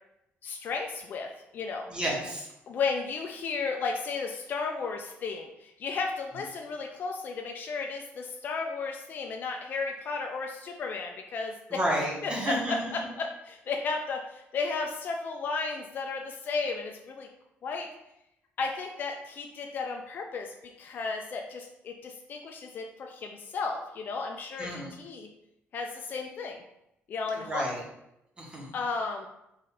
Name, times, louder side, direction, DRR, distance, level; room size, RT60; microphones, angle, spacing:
voice 1, 0.4-1.9 2.7-11.8 12.2-17.3 17.6-17.9 18.6-25.3 25.7-26.6 27.1-27.7 28.7-29.3, left 4 dB, 45° left, 2 dB, 0.4 m, -34 dB
voice 2, 1.9-2.5 11.7-12.9 24.6-24.9 27.5-27.8 28.4-28.7, right 1 dB, 20° right, -2 dB, 1.0 m, -31 dB
4.0 x 2.5 x 4.2 m, 0.85 s
cardioid pair, 150°, 4 cm